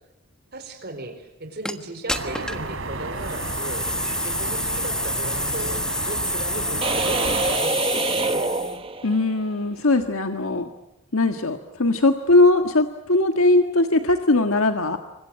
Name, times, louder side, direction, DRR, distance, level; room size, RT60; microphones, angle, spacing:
voice 1, 0.5-5.8 6.1-8.8, right 1 dB, 50° right, 7 dB, 4.3 m, -36 dB
sound 1, 1.6-1.7 2.1-2.7 3.2-8.8, left 1 dB, 5° left, 1.4 m, -28 dB
sound 2, 2.1-7.6, right 2 dB, 65° right, 3.5 m, -32 dB
sound 3, 6.8-9.4, right 3 dB, 25° right, 1.3 m, -25 dB
voice 2, 9.0-10.7 11.1-15.0, left 2 dB, 75° left, 6 dB, 1.6 m, -20 dB
29.0 x 25.0 x 7.6 m, 0.93 s
head